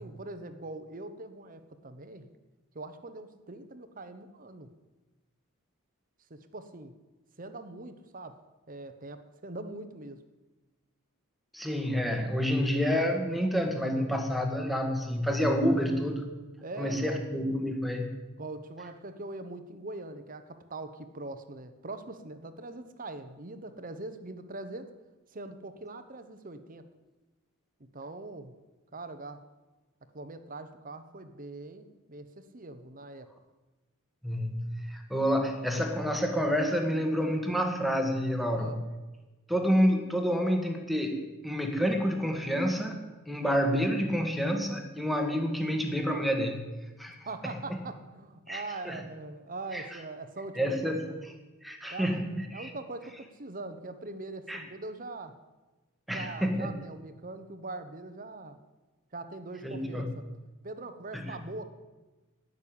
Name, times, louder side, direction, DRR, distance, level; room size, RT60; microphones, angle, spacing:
voice 1, 0.0-2.3 2.7-4.7 6.3-6.9 7.4-8.4 8.7-10.2 16.6-17.2 18.4-24.9 25.3-26.8 27.8-28.5 28.9-29.4 30.1-33.3 38.5-38.8 47.1-51.2 51.9-52.1 52.5-55.4 56.1-58.6 59.1-60.2 60.6-61.6, right 2 dB, 40° right, 10 dB, 1.1 m, -42 dB
voice 2, 11.5-16.3 16.8-18.2 34.2-38.8 39.5-43.0 43.3-46.7 47.0-47.2 48.5-49.0 49.7-49.8 50.6-51.0 51.6-52.7 54.5-54.6 56.1-56.7 59.6-60.1 61.1-61.3, equal, ahead, 3 dB, 1.8 m, -28 dB
18.5 x 6.7 x 8.8 m, 1.2 s
head